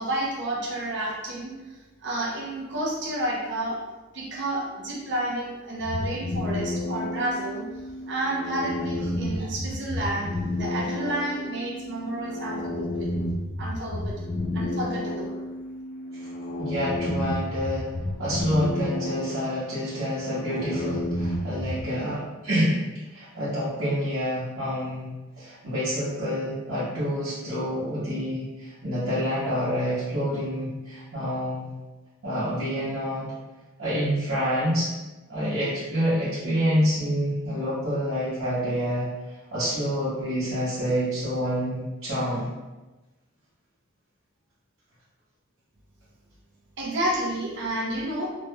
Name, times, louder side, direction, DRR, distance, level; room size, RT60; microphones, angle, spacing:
voice 1, 0.0-3.8 4.1-7.6 8.1-10.3 10.5-13.2 13.6-14.2 14.5-15.3 46.8-48.3, right 1 dB, 60° right, -3 dB, 0.7 m, -30 dB
sound 1, 5.8-21.8, left 1 dB, 45° left, 0.4 m, -31 dB
voice 2, 16.6-17.9 18.2-22.8 23.1-25.1 25.4-31.7 32.2-33.3 33.8-34.9 35.3-39.1 39.5-42.5, equal, 80° right, -13 dB, 1.1 m, -27 dB
3.1 x 2.2 x 3.1 m, 1.1 s
head